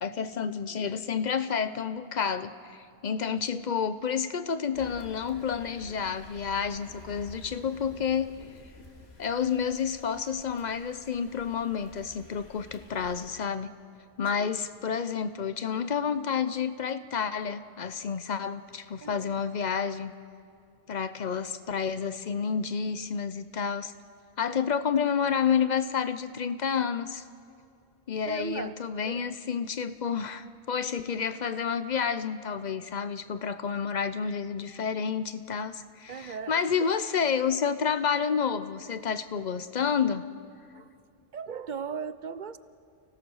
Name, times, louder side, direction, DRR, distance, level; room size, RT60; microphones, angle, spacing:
voice 1, 0.0-8.3 9.2-13.7 14.2-20.1 20.9-23.9 24.4-27.2 28.1-40.2, left 6 dB, 45° left, 12 dB, 0.8 m, -30 dB
sound 1, 4.7-13.3, left 2 dB, 65° left, 2.5 m, -50 dB
voice 2, 19.0-19.4 28.3-28.8 29.0-29.3 36.1-36.9 40.7-40.9 41.3-42.6, right 6 dB, 50° right, 13 dB, 0.7 m, -38 dB
29.0 x 17.0 x 6.4 m, 2.4 s
omnidirectional pair, 1.1 m